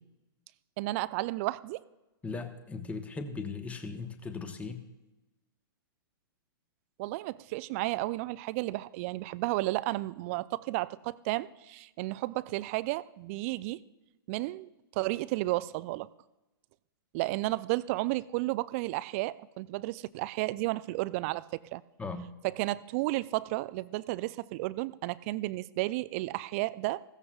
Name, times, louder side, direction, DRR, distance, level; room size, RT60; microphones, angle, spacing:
voice 1, 0.8-1.8 7.0-13.8 14.3-16.1 17.1-21.8 22.4-27.0, right 19 dB, 35° right, 18 dB, 0.4 m, -32 dB
voice 2, 2.2-4.9 22.0-22.3, left 4 dB, 10° left, 8 dB, 1.0 m, -38 dB
16.0 x 13.5 x 2.4 m, 1.0 s
figure-of-eight pair, 115°, 12 cm